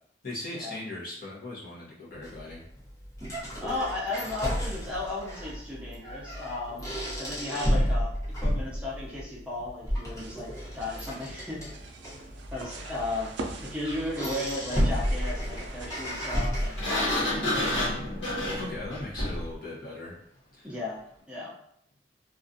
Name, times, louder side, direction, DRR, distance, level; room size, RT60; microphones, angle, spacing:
voice 1, 0.2-2.6 18.5-20.1 20.5-20.7, left 2 dB, 55° left, -5 dB, 0.8 m, -39 dB
sound 1, 2.2-17.2, equal, 15° left, 0.9 m, -32 dB
voice 2, 3.6-6.9 7.2-11.7 12.5-13.3 13.6-17.9 20.6-21.0 21.3-21.5, left 2 dB, 5° right, -6 dB, 0.5 m, -35 dB
sound 2, 10.2-16.1, right 3 dB, 75° right, 0.4 m, -43 dB
Sliding door, 16.8-19.5, left 1 dB, 90° left, 0.9 m, -29 dB
2.4 x 2.3 x 2.6 m, 0.71 s
head